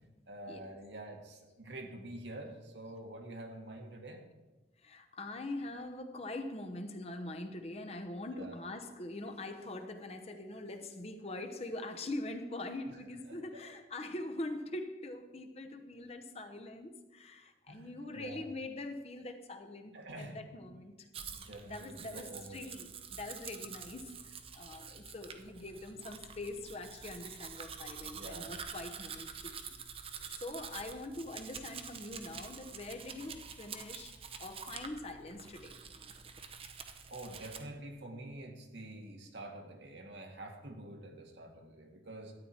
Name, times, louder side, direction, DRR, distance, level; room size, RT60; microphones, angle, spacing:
voice 1, 0.3-4.3 8.3-8.6 13.3-13.6 17.7-18.5 19.9-20.4 21.3-22.7 28.0-28.5 37.1-42.3, right 1 dB, 85° right, 2 dB, 1.7 m, -47 dB
voice 2, 4.8-21.1 21.7-29.7 30.4-35.7, left 2 dB, 35° left, 6 dB, 0.9 m, -43 dB
Domestic sounds home sounds, 21.1-37.6, right 6 dB, 30° right, 0.7 m, -47 dB
13.0 x 9.2 x 4.3 m, 1.1 s
head